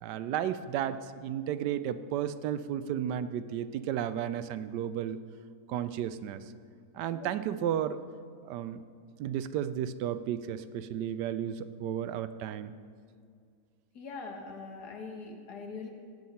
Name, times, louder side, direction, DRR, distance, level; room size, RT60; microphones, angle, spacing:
voice 1, 0.0-5.2 5.7-6.4 6.9-8.0 8.4-8.9 9.2-12.7, right 10 dB, 90° right, 13 dB, 1.2 m, -33 dB
voice 2, 14.0-15.9, left 4 dB, 75° left, 3 dB, 1.9 m, -42 dB
16.0 x 9.4 x 4.2 m, 2.1 s
omnidirectional pair, 1.8 m